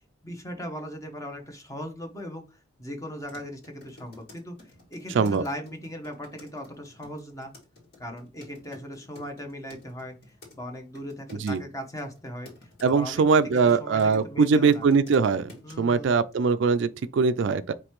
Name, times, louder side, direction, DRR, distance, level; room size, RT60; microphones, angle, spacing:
voice 1, 0.2-7.5 8.0-13.2 13.5-14.8 15.6-16.2, equal, 15° left, 0.9 m, -38 dB
sound 1, 3.2-10.5 10.9-11.6 12.0-14.2 14.5-15.7, left 2 dB, 60° left, 2.0 m, -50 dB
voice 2, 12.8-15.5 15.8-17.7, right 5 dB, 65° right, 0.4 m, -22 dB
5.1 x 3.2 x 3.1 m
head